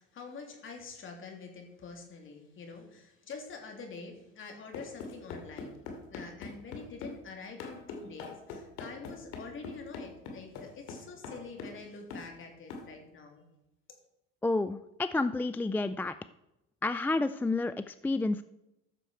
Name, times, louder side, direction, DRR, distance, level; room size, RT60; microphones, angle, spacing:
voice 1, 0.0-13.4, left 4 dB, 45° left, 2 dB, 3.1 m, -46 dB
sound 1, 4.7-7.2 7.6-11.8 12.1-12.3 12.7-12.9, left 4 dB, 80° left, 2.5 m, -42 dB
voice 2, 14.4-16.1 16.8-18.4, left 2 dB, 5° left, 12 dB, 0.3 m, -30 dB
14.0 x 6.8 x 4.5 m, 0.90 s
supercardioid pair, 95°, 29 cm